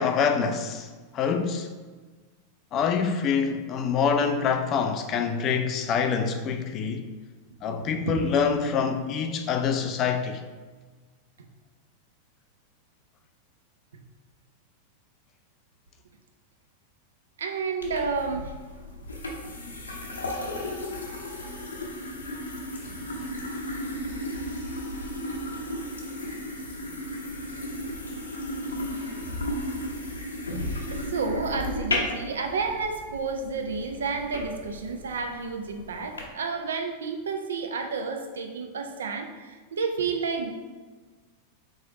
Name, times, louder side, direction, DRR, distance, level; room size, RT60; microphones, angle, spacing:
voice 1, 0.0-1.7 2.7-7.1 7.6-10.4, left 6 dB, 35° left, 0.4 m, -26 dB
voice 2, 17.4-18.6 30.9-40.5, right 4 dB, 65° right, 0.5 m, -31 dB
sound 1, 17.8-36.2, left 1 dB, 75° left, 0.8 m, -34 dB
3.8 x 3.1 x 3.9 m
figure-of-eight pair, 90°, 0 cm